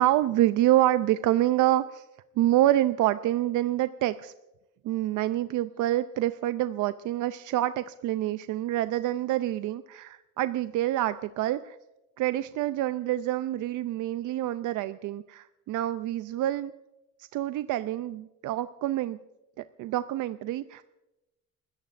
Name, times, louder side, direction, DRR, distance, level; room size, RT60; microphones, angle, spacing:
voice 1, 0.0-2.0 2.4-4.3 4.8-11.8 12.2-16.7 17.3-19.2 19.6-20.8, right 14 dB, 85° right, 12 dB, 0.5 m, -27 dB
30.0 x 14.0 x 2.5 m, 0.97 s
cardioid pair, 90°, 30 cm